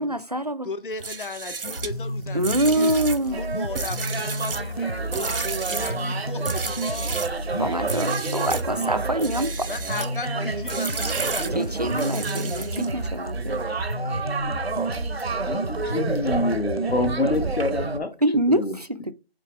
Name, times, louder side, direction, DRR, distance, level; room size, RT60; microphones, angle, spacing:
voice 1, 0.0-0.7 2.3-3.5 7.6-9.7 11.6-13.6 18.2-19.1, right 1 dB, 40° right, 0.4 m, -25 dB
voice 2, 0.6-3.1 3.4-7.2 9.7-12.0, left 4 dB, 55° left, 0.8 m, -36 dB
sound 1, 0.9-7.4 7.8-8.7 9.1-10.2 10.7-13.1, right 4 dB, 60° right, 0.8 m, -33 dB
sound 2, 1.8-17.8, right 1 dB, 40° left, 0.4 m, -31 dB
sound 3, 3.3-18.0, right 4 dB, 80° right, 1.1 m, -30 dB
voice 3, 15.5-18.1 18.5-18.8, left 2 dB, 85° left, 1.7 m, -26 dB
7.3 x 4.1 x 3.3 m
figure-of-eight pair, 175°, 31 cm